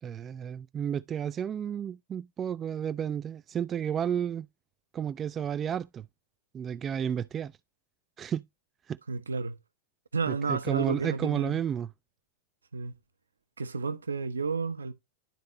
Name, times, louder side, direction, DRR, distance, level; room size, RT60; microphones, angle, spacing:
voice 1, 0.0-4.5 4.9-6.1 6.5-7.5 8.2-8.4 8.9-9.0 10.3-11.9, right 8 dB, 25° right, 0.3 m, -32 dB
voice 2, 9.1-9.6 10.1-11.6 12.7-12.9 13.6-14.9, right 4 dB, 75° right, 0.8 m, -31 dB
11.5 x 4.0 x 2.6 m
figure-of-eight pair, 90°, 0 cm